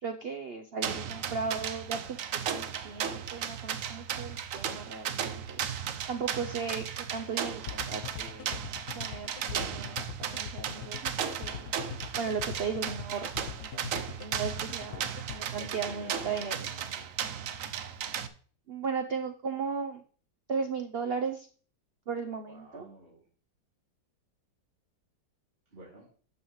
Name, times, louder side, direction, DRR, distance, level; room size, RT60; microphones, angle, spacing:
voice 1, 0.0-5.6 6.1-8.6 9.0-11.7 12.2-15.0 15.3-16.7 18.7-20.0 20.5-21.5 22.1-22.9, right 5 dB, 85° right, 7 dB, 0.5 m, -36 dB
sound 1, 0.8-18.3, right 8 dB, 65° right, 0.9 m, -35 dB
sound 2, 7.7-15.4, left 12 dB, 65° left, 1.0 m, -41 dB
voice 2, 15.5-17.1 22.5-23.2 25.7-26.1, right 2 dB, 30° right, -5 dB, 2.9 m, -50 dB
12.0 x 7.1 x 3.1 m, 0.43 s
omnidirectional pair, 2.0 m